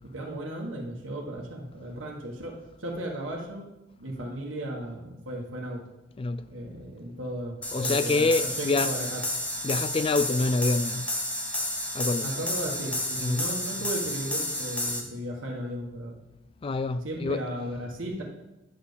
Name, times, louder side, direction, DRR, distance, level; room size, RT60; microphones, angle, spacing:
voice 1, 0.1-3.7 4.0-5.8 6.5-9.2 12.2-16.2 17.0-18.2, right 1 dB, 85° right, 1.6 m, -35 dB
sound 1, 7.6-15.0, left 1 dB, 5° left, 0.9 m, -31 dB
voice 2, 7.7-8.9 9.6-11.1 11.9-12.3 13.2-13.4 16.6-17.4, left 3 dB, 30° left, 0.3 m, -26 dB
9.1 x 4.3 x 6.9 m
head